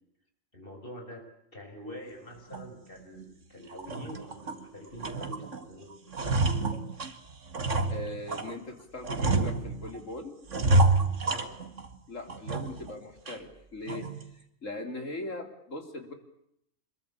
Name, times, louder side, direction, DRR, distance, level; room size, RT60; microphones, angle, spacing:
voice 1, 0.5-1.2 1.5-5.9 11.2-11.5, equal, 40° left, 3 dB, 6.8 m, -45 dB
sound 1, 2.5-2.7 3.2-3.3 3.7-4.6 5.0-5.6 5.9-8.5 9.0-10.0 10.5-11.9 12.3-12.9 13.3-13.4 13.9-14.2, right 2 dB, 65° right, 2.4 m, -28 dB
voice 2, 7.9-10.3 12.1-16.1, left 2 dB, 70° left, 6 dB, 4.0 m, -40 dB
26.0 x 22.5 x 8.6 m, 0.76 s
omnidirectional pair, 1.4 m